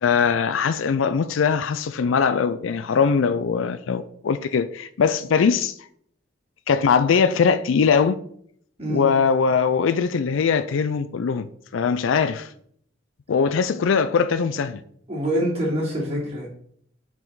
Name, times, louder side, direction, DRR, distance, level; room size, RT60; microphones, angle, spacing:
voice 1, 0.0-5.7 6.7-8.2 8.9-11.5 11.7-12.5 13.3-14.8, left 6 dB, 85° left, 0.4 m, -21 dB
voice 2, 15.1-16.5, equal, 30° right, 3.0 m, -25 dB
9.1 x 4.9 x 3.9 m
head